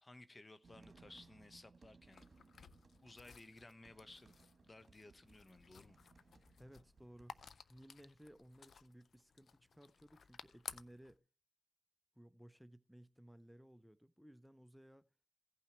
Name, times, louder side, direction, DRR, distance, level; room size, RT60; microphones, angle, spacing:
voice 1, 0.0-2.2 3.0-4.3 4.6-6.0, left 2 dB, 35° left, 1.0 m, -58 dB
sound 1, 0.6-7.5, right 4 dB, 55° right, 1.3 m, -66 dB
sound 2, 2.1-11.2, left 6 dB, 70° left, 0.5 m, -57 dB
voice 2, 6.6-7.4 7.7-11.2 12.2-15.1, equal, ahead, 0.7 m, -60 dB
16.0 x 5.6 x 4.4 m
supercardioid pair, 40°, 0 cm